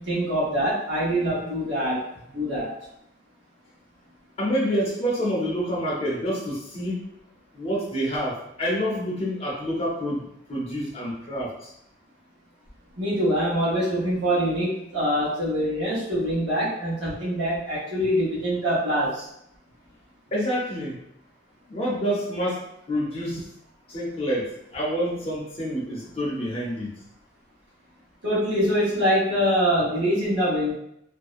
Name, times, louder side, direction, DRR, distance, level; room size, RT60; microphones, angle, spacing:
voice 1, 0.0-2.0 2.3-2.7 13.0-19.3 23.2-23.4 28.2-30.7, equal, 70° right, -8 dB, 1.0 m, -24 dB
voice 2, 4.4-7.0 7.5-10.2 10.5-11.7 20.3-21.0 21.7-23.4 23.9-26.9, equal, 30° left, -5 dB, 0.6 m, -27 dB
2.6 x 2.1 x 2.4 m, 0.75 s
head